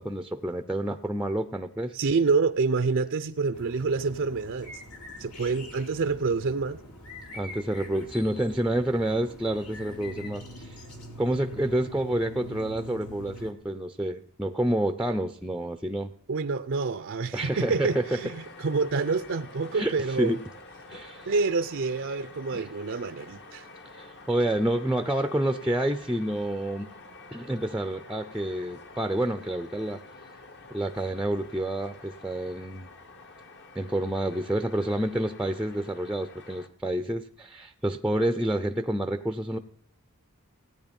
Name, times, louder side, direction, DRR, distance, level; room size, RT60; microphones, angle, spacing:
voice 1, 0.0-1.9 7.3-10.8 11.2-16.1 17.3-18.0 19.7-20.4 20.9-21.3 22.5-22.7 23.9-26.9 27.3-30.0 30.7-32.9 33.7-39.6, right 1 dB, 5° right, 0.5 m, -28 dB
voice 2, 1.9-4.8 5.2-6.8 16.3-20.4 21.3-23.7, right 4 dB, 60° right, 0.5 m, -27 dB
sound 1, 3.5-13.5, left 1 dB, 90° left, 3.2 m, -44 dB
sound 2, 17.4-36.7, left 3 dB, 50° left, 1.3 m, -48 dB
17.0 x 9.5 x 5.3 m
head